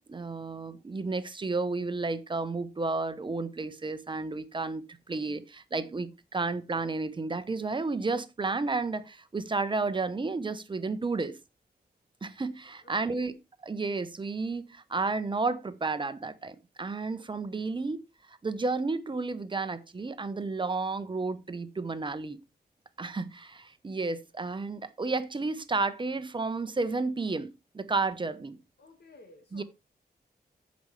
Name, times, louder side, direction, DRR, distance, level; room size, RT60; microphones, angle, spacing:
voice 1, 0.1-11.4 12.2-13.3 13.6-18.0 18.3-22.4 23.0-28.6 29.5-29.6, right 3 dB, 30° right, 0.8 m, -32 dB
voice 2, 12.8-13.4 28.8-29.6, left 2 dB, 80° left, 1.7 m, -54 dB
15.0 x 5.2 x 3.2 m
wide cardioid pair, 150°, 17 cm